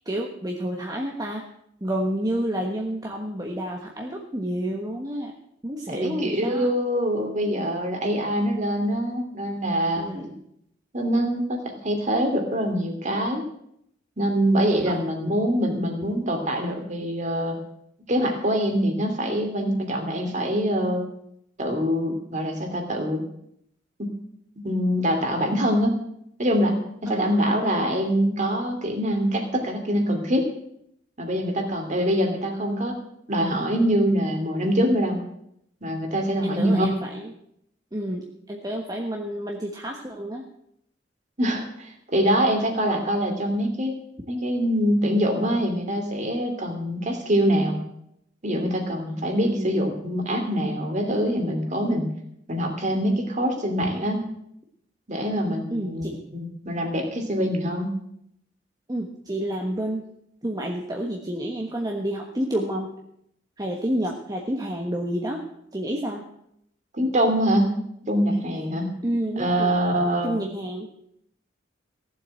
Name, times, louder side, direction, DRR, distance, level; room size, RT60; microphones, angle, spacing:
voice 1, 0.0-1.4 1.8-5.3 5.6-6.7 9.9-10.4 14.9-15.0 27.1-27.3 36.4-37.3 37.9-40.4 49.4-49.7 55.7-56.2 58.9-60.1 60.4-62.9 63.6-65.4 65.7-66.2 69.0-69.8 70.2-70.9, right 1 dB, 20° right, 0 dB, 1.3 m, -29 dB
voice 2, 5.9-10.1 10.9-13.5 14.2-17.6 18.1-21.0 21.6-23.2 24.0-24.1 24.6-25.9 26.4-30.5 31.2-33.0 33.3-35.2 35.8-36.9 41.4-44.0 44.3-47.8 48.4-52.1 52.5-54.2 55.1-58.0 66.9-67.8 68.0-68.9 69.4-70.4, equal, 40° right, 4 dB, 2.7 m, -24 dB
15.5 x 7.5 x 7.7 m, 0.73 s
head